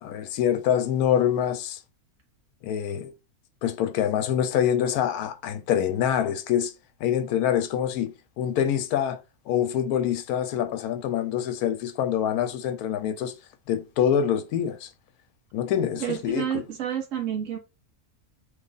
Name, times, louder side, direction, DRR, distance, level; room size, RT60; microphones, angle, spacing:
voice 1, 0.0-1.8 2.6-3.1 3.6-6.7 7.0-9.2 9.5-13.3 13.7-14.9 15.5-16.6, left 9 dB, 80° left, 1.1 m, -25 dB
voice 2, 16.0-17.6, right 9 dB, 65° right, 1.0 m, -29 dB
3.2 x 2.3 x 3.7 m
omnidirectional pair, 1.6 m